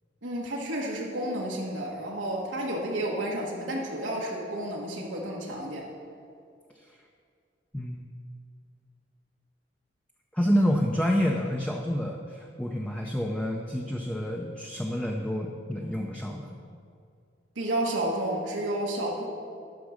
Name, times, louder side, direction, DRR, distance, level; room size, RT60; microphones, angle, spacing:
voice 1, 0.2-5.9 17.5-19.3, right 1 dB, 90° right, -3 dB, 1.4 m, -31 dB
voice 2, 10.3-16.6, equal, 5° left, 0 dB, 0.5 m, -28 dB
12.0 x 6.1 x 6.4 m, 2.3 s
head